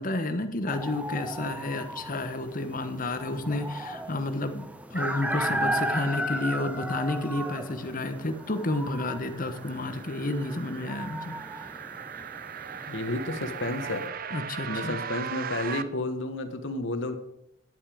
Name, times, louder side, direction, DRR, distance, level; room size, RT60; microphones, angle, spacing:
voice 1, 0.0-11.4 14.3-15.0, left 2 dB, 45° left, 8 dB, 1.1 m, -31 dB
sound 1, 0.7-14.1, right 1 dB, 5° right, 0.7 m, -36 dB
voice 2, 5.4-5.8 9.9-10.0 12.9-14.0 14.7-17.1, left 2 dB, 65° left, 8 dB, 1.3 m, -32 dB
sound 2, 7.5-15.8, right 8 dB, 45° right, 0.5 m, -39 dB
10.5 x 9.1 x 5.0 m, 0.78 s
head